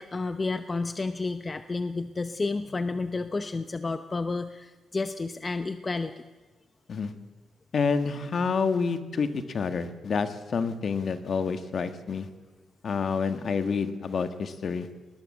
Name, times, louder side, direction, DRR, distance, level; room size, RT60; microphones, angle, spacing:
voice 1, 0.0-6.2, left 3 dB, 25° left, 10 dB, 0.8 m, -31 dB
voice 2, 7.7-12.3 12.8-14.9, left 5 dB, 50° left, 9 dB, 1.6 m, -28 dB
20.0 x 19.5 x 7.7 m, 1.3 s
cardioid pair, 105°, 0 cm